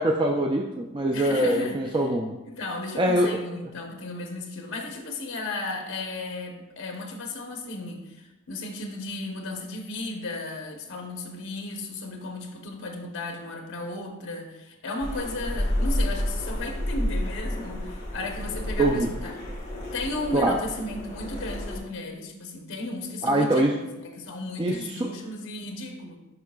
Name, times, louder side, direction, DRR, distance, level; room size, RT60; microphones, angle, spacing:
voice 1, 0.0-2.3 3.0-3.4 18.8-19.1 20.3-20.6 23.2-23.8 24.6-25.1, right 1 dB, 20° right, 1 dB, 0.3 m, -23 dB
voice 2, 1.1-1.8 2.5-19.4 19.9-26.2, left 2 dB, 70° left, 3 dB, 0.8 m, -35 dB
sound 1, 15.0-21.8, left 1 dB, 30° left, 1.6 m, -30 dB
11.0 x 4.7 x 2.3 m, 1.0 s
head